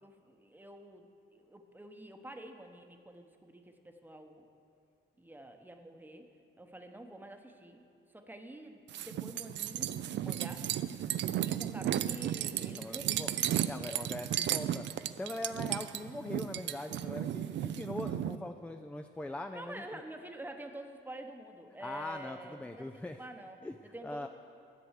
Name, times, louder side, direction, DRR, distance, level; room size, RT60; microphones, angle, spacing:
voice 1, 0.0-4.5 5.2-6.3 6.6-10.7 11.2-13.4 19.5-23.6 23.9-24.3, right 1 dB, 10° right, 5 dB, 0.9 m, -48 dB
sound 1, 8.9-18.4, right 11 dB, 65° right, 0.4 m, -34 dB
voice 2, 12.8-13.3 13.7-14.9 15.2-19.8 21.8-23.2 23.6-24.3, left 2 dB, 5° left, 6 dB, 0.4 m, -41 dB
11.0 x 6.9 x 6.5 m, 2.4 s
cardioid pair, 90°, 20 cm